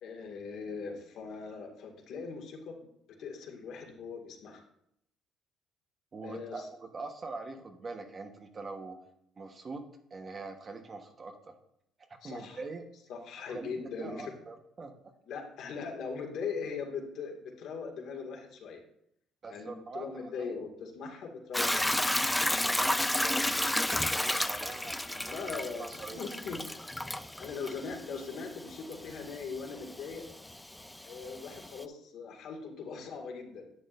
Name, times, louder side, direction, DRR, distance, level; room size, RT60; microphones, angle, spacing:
voice 1, 0.0-2.9 3.2-4.6 6.2-6.6 12.2-12.6 13.1-14.2 15.3-18.8 19.5-22.0 25.3-25.9 26.1-26.6 27.4-30.2 31.0-33.6, left 5 dB, 70° left, 1 dB, 2.0 m, -40 dB
voice 2, 6.1-9.0 9.4-11.5 12.2-12.9 13.5-15.0 19.4-20.6 22.4-25.4 25.8-26.2, right 3 dB, 35° right, 5 dB, 1.2 m, -43 dB
Hiss / Toilet flush / Trickle dribble, 21.5-31.8, left 1 dB, 5° left, 0.4 m, -32 dB
11.0 x 7.9 x 2.6 m, 0.74 s
cardioid pair, 110°, 0 cm